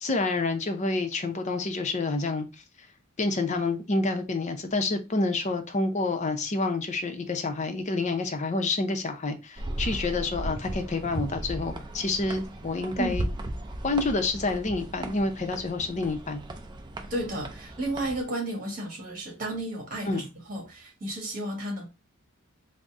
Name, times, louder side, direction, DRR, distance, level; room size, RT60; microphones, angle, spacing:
voice 1, 0.0-2.5 3.2-13.3 13.8-16.4 20.0-20.3, left 3 dB, 35° left, 0.6 m, -28 dB
sound 1, 9.6-18.2, right 1 dB, 20° right, 0.4 m, -36 dB
voice 2, 17.1-21.9, right 1 dB, 40° right, 1.4 m, -33 dB
3.9 x 2.0 x 3.5 m
head